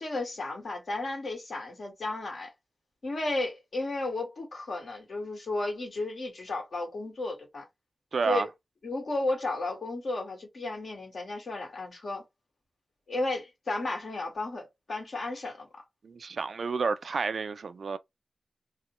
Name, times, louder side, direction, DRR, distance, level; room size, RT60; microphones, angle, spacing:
voice 1, 0.0-2.5 3.0-7.6 8.2-8.5 8.8-12.2 13.1-15.7, left 2 dB, 70° left, 1.6 m, -33 dB
voice 2, 8.1-8.5 16.0-18.0, right 4 dB, 80° right, 0.3 m, -30 dB
2.9 x 2.2 x 3.0 m
cardioid pair, 55°, 0 cm